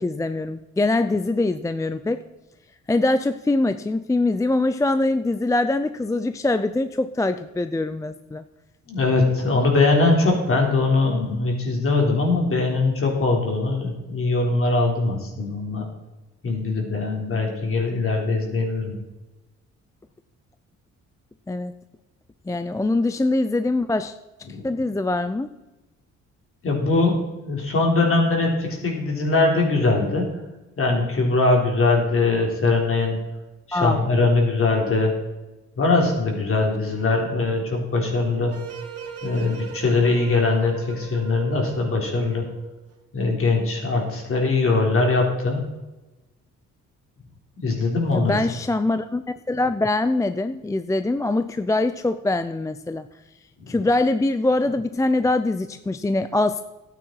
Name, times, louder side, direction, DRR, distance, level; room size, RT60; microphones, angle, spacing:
voice 1, 0.0-2.2 2.9-8.4 21.5-21.7 22.5-24.1 24.6-25.5 33.7-34.0 48.1-49.2 49.5-53.1 53.7-56.6, left 2 dB, 10° left, 10 dB, 0.5 m, -23 dB
voice 2, 8.9-15.9 16.4-19.0 24.5-24.6 26.6-27.2 27.5-30.3 30.8-33.2 33.7-35.1 35.8-38.5 39.2-42.4 43.1-45.6 47.6-48.4 53.6-53.8, left 3 dB, 45° left, 0 dB, 3.8 m, -21 dB
sound 1, 38.5-42.8, right 5 dB, 50° right, 2.5 m, -38 dB
12.5 x 9.1 x 4.6 m, 1.1 s
cardioid pair, 90°, 30 cm